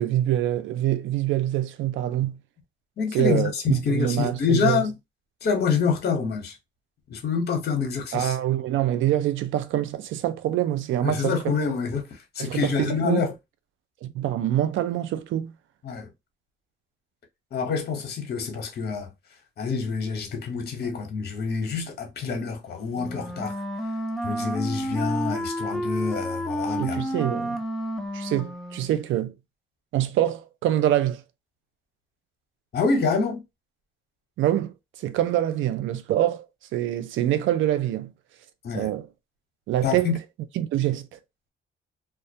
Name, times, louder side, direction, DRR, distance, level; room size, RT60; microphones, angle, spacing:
voice 1, 0.0-2.4 3.1-4.8 8.1-11.5 12.4-13.2 14.0-15.5 26.8-27.6 28.1-29.3 29.9-31.2 34.4-36.5 36.7-38.1 38.7-39.1 39.7-40.1 40.6-41.2, right 12 dB, 75° right, 0.4 m, -25 dB
voice 2, 3.0-4.9 5.4-6.6 7.1-8.4 11.0-13.3 15.8-16.1 17.5-19.1 19.6-23.5 24.2-27.0 32.7-33.4 38.6-38.9 39.8-40.2, left 5 dB, 55° left, 0.9 m, -26 dB
Wind instrument woodwind instrument, 22.9-29.0, equal, ahead, 0.4 m, -30 dB
2.3 x 2.1 x 2.7 m
cardioid pair, 90°, 20 cm